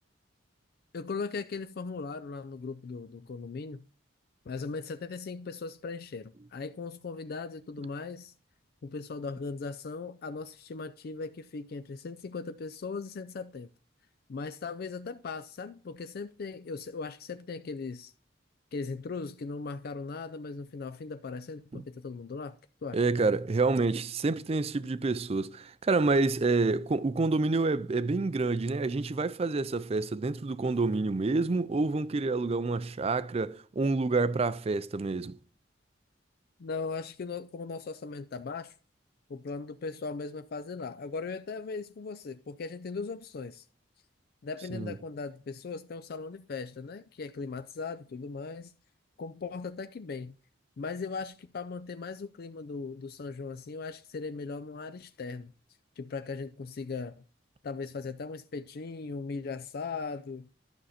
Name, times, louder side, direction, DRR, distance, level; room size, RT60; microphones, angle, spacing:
voice 1, 0.9-3.9 4.5-8.3 8.8-13.7 14.3-18.1 18.7-22.6 22.8-23.0 36.6-38.7 39.3-43.7 44.4-48.7 49.2-50.3 50.8-55.5 56.0-57.2 57.6-60.5, left 4 dB, 55° left, 0.4 m, -38 dB
voice 2, 22.9-35.4 44.7-44.9, right 3 dB, 30° right, 0.4 m, -28 dB
11.5 x 6.3 x 4.2 m
head